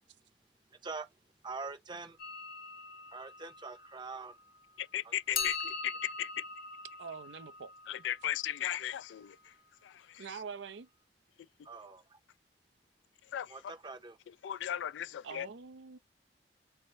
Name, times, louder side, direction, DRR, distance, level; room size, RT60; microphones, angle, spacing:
voice 1, 1.4-2.2 3.1-4.4 5.0-5.7 11.6-12.2 13.5-14.2, right 4 dB, 25° right, 0.6 m, -44 dB
sound 1, 2.2-4.6 5.3-9.2, left 5 dB, 55° left, 0.8 m, -42 dB
voice 2, 4.8-5.6 5.8-5.9 6.2-6.3 7.9-9.3 13.3-13.5 14.4-15.5, left 11 dB, 85° left, 0.3 m, -35 dB
voice 3, 7.0-7.7 10.2-10.9 15.2-16.0, right 6 dB, 85° right, 0.5 m, -44 dB
3.4 x 2.6 x 4.2 m
head